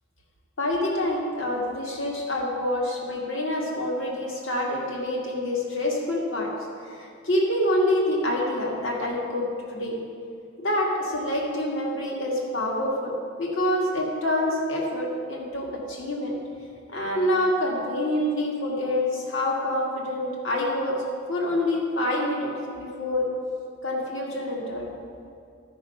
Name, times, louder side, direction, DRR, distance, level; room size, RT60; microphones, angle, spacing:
voice 1, 0.6-6.5 6.8-10.0 10.6-13.1 13.4-16.3 16.9-21.0 21.3-22.5 22.8-23.2 23.8-24.8, left 1 dB, 70° left, -2 dB, 1.7 m, -26 dB
12.0 x 5.3 x 5.6 m, 2.4 s
head